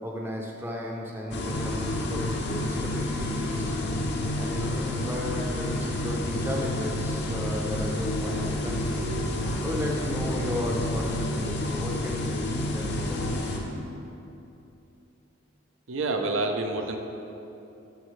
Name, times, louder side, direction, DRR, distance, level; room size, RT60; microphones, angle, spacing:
voice 1, 0.0-3.8 4.3-9.1 9.6-13.6, equal, 10° right, -1 dB, 0.6 m, -34 dB
sound 1, 1.3-13.6, left 1 dB, 55° left, 0.7 m, -29 dB
voice 2, 15.9-17.0, right 2 dB, 70° right, 4 dB, 0.6 m, -27 dB
12.5 x 4.4 x 3.2 m, 2.8 s
head